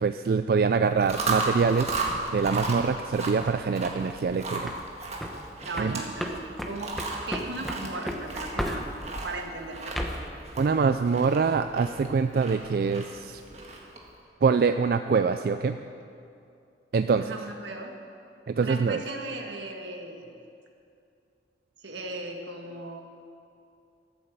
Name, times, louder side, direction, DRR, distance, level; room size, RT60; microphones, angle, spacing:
voice 1, 0.0-1.9 2.3-4.7 5.8-6.0 10.6-13.4 14.4-15.8 16.9-17.4 18.5-19.0, right 5 dB, 55° right, 9 dB, 0.3 m, -24 dB
Chewing mastication, 0.9-14.1, right 3 dB, 35° right, 1.6 m, -35 dB
sound 1, 1.9-3.6 4.0-4.3 4.6-4.9 5.2-9.3 9.7-10.3, equal, ahead, 0.9 m, -35 dB
voice 2, 5.6-8.9 9.2-10.3 17.2-18.0 18.6-20.3 21.8-23.0, right 2 dB, 85° right, 3 dB, 1.6 m, -37 dB
13.5 x 8.6 x 7.4 m, 2.5 s
head